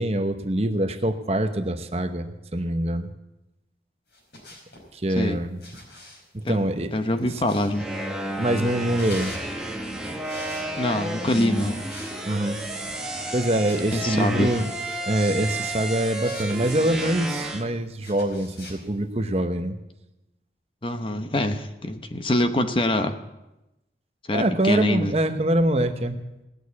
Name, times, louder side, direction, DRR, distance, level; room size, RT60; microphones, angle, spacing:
voice 1, 0.0-2.3 2.5-3.1 4.9-5.6 6.3-6.9 7.2-7.3 8.4-9.4 12.2-12.6 13.3-14.6 15.1-19.7 24.3-26.2, right 1 dB, 35° right, 7 dB, 0.9 m, -24 dB
sound 1, 4.1-4.9 5.6-8.0 8.7-9.5 10.2-11.1 11.7-12.2 12.4-12.6 13.1-14.2 14.8-15.5 16.2-17.1 18.0-18.8, left 2 dB, 85° left, 4.6 m, -44 dB
voice 2, 6.4-7.9 10.8-11.7 13.9-14.5 20.8-23.1 24.3-25.1, left 1 dB, 30° left, 8 dB, 0.8 m, -25 dB
sound 2, 7.7-17.6, right 1 dB, 5° right, 1.3 m, -31 dB
18.5 x 6.5 x 8.3 m, 0.95 s
head